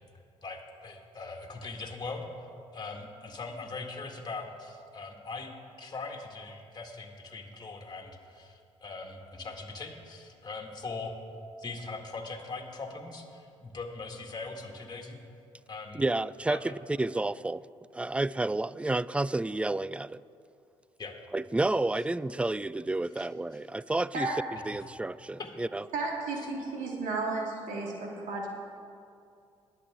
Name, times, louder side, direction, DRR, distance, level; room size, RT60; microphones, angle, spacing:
voice 1, 0.4-5.5 5.8-11.2 11.6-15.2 15.7-16.0 16.5-16.7 21.0-21.1 23.1-23.3 24.7-24.8 25.4-25.5, left 3 dB, 30° left, 2 dB, 2.0 m, -41 dB
voice 2, 15.9-17.6 17.9-20.2 21.3-24.3 24.7-25.8, right 2 dB, 10° right, 19 dB, 0.3 m, -30 dB
voice 3, 25.9-28.5, right 3 dB, 70° right, -1 dB, 2.4 m, -33 dB
21.0 x 7.4 x 3.7 m, 2.5 s
hypercardioid pair, 45°, 14 cm